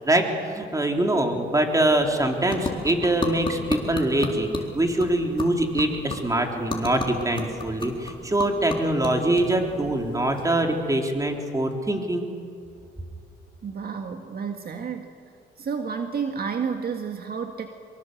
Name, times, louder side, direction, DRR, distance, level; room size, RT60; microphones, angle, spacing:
voice 1, 0.5-4.5 4.7-12.3, right 1 dB, 15° right, 3 dB, 3.6 m, -23 dB
sound 1, 1.5-11.0, left 3 dB, 25° left, 4.2 m, -35 dB
voice 2, 13.6-15.1 15.6-17.7, right 6 dB, 50° right, 4 dB, 1.8 m, -30 dB
24.5 x 23.0 x 7.9 m, 2.5 s
cardioid pair, 90°, 20 cm